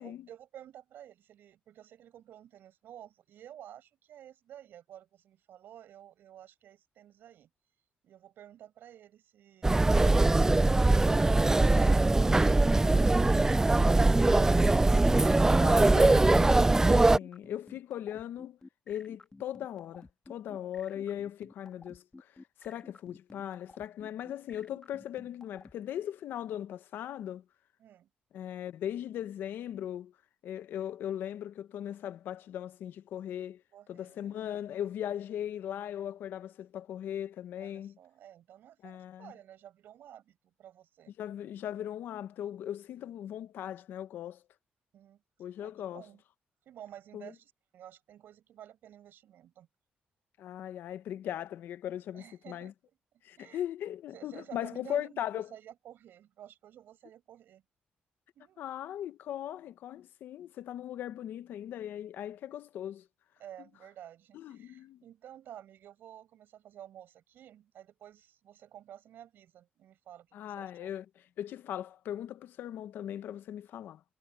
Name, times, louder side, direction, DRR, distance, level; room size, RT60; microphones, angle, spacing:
voice 1, 0.0-7.5 8.0-12.0 27.8-28.1 33.7-34.4 37.6-41.1 44.9-45.2 45.6-46.2 46.7-49.7 52.1-52.7 53.4-53.6 54.1-57.6 58.4-58.7 63.4-70.9, right 11 dB, 85° right, 7.1 m, -52 dB
sound 1, 9.6-17.2, right 2 dB, 15° right, 0.3 m, -22 dB
sound 2, 11.4-25.7, left 3 dB, 25° left, 1.7 m, -52 dB
voice 2, 15.3-18.6 18.9-27.4 28.3-30.1 30.4-33.6 33.9-38.0 38.8-39.3 41.2-44.4 45.4-46.0 47.1-47.3 50.4-52.7 53.2-55.5 58.6-63.1 64.3-65.0 70.3-71.1 71.4-74.0, left 10 dB, 85° left, 0.8 m, -39 dB
cardioid pair, 90°, 3 cm